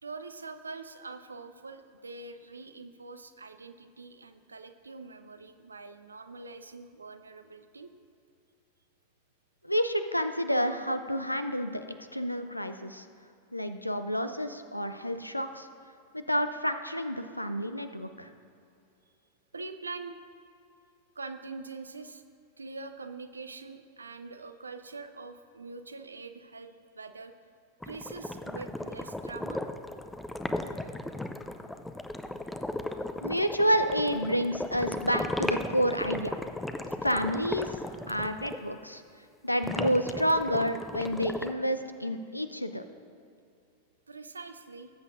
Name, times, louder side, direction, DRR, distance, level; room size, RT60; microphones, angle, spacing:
voice 1, 0.0-7.9 19.5-20.2 21.2-22.2 22.6-27.3 27.8-29.6 44.1-44.9, right 3 dB, 75° right, 9 dB, 0.6 m, -44 dB
voice 2, 9.6-11.8 12.1-13.1 13.5-15.7 16.1-18.3 33.2-36.3 37.0-37.7 38.1-39.0 39.4-42.8, equal, 90° left, 9 dB, 0.5 m, -29 dB
sound 1, 27.8-38.6 39.6-41.5, left 1 dB, 5° left, 0.5 m, -36 dB
18.0 x 8.2 x 2.6 m, 2.6 s
figure-of-eight pair, 90°, 0 cm